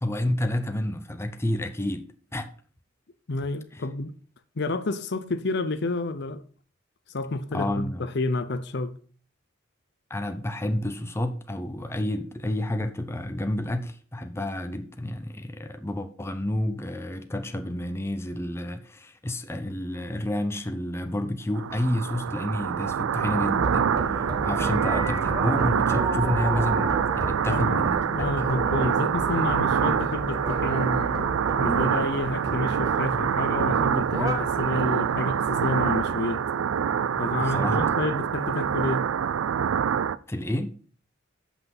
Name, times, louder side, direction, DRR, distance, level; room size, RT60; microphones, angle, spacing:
voice 1, 0.0-2.1 2.3-2.5 3.7-3.8 7.5-8.1 10.1-28.3 37.2-38.0 40.3-40.7, left 1 dB, 15° left, 0.6 m, -30 dB
voice 2, 3.3-4.1 4.6-6.4 7.1-8.9 27.5-31.3 31.6-36.4 37.2-39.0, left 2 dB, 55° left, 0.7 m, -29 dB
sound 1, 21.6-40.2, right 7 dB, 80° right, 0.4 m, -26 dB
sound 2, 23.4-34.6, right 2 dB, 20° right, 1.3 m, -33 dB
8.2 x 5.9 x 5.4 m
head